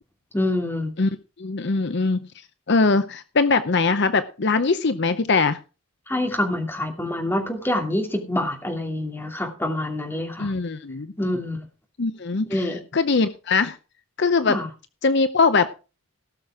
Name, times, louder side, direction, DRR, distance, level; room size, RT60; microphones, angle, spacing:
voice 1, 0.3-0.9 6.1-10.5 11.2-11.7 12.5-12.8 14.5-14.7, left 1 dB, 10° left, 2 dB, 2.7 m, -26 dB
voice 2, 1.4-2.2 2.7-5.6 10.4-11.1 12.0-12.7 12.9-13.8 14.2-14.6 15.0-15.7, left 4 dB, 55° left, 11 dB, 0.7 m, -21 dB
17.5 x 6.6 x 4.8 m, 0.32 s
head